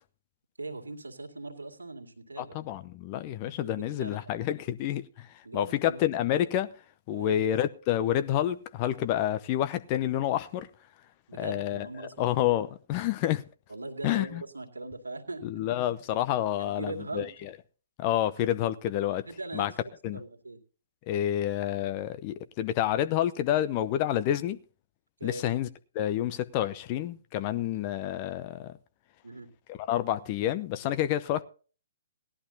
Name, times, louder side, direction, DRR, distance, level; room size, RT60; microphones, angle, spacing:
voice 1, 0.6-2.6 3.4-4.2 5.4-6.0 7.1-7.4 11.3-12.3 13.7-15.4 16.6-17.3 19.2-19.7 20.1-20.6 25.2-25.5 29.2-29.5, right 2 dB, 75° right, 2.2 m, -40 dB
voice 2, 2.4-6.7 7.1-10.7 11.3-13.4 14.0-14.4 15.4-17.5 18.0-19.3 19.5-19.7 20.0-20.2 21.1-24.6 25.2-25.7 25.9-28.7 29.7-31.4, left 12 dB, 30° left, 0.7 m, -29 dB
18.0 x 11.5 x 2.8 m
figure-of-eight pair, 125°, 0 cm